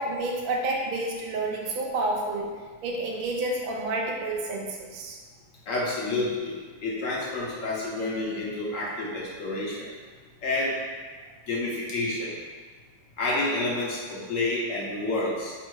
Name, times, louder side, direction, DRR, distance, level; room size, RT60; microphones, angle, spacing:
voice 1, 0.0-2.5 2.8-5.2, right 2 dB, 90° right, 0 dB, 0.4 m, -29 dB
voice 2, 5.7-9.9 10.4-10.8 11.5-12.3 13.2-15.5, left 2 dB, 60° left, -5 dB, 1.2 m, -29 dB
3.5 x 2.6 x 4.6 m, 1.4 s
omnidirectional pair, 1.7 m